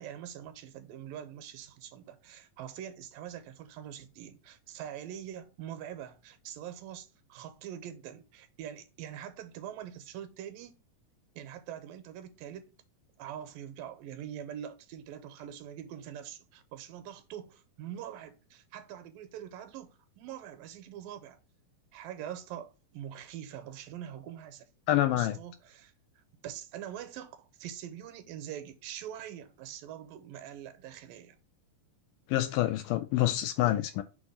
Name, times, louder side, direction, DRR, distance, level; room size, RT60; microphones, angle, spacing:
voice 1, 0.0-10.8 11.4-12.6 13.2-21.4 21.9-25.9 26.4-31.4, right 10 dB, 80° right, 2.4 m, -44 dB
voice 2, 24.9-25.4 32.3-34.0, left 14 dB, 80° left, 2.0 m, -27 dB
6.4 x 3.0 x 5.4 m
omnidirectional pair, 4.0 m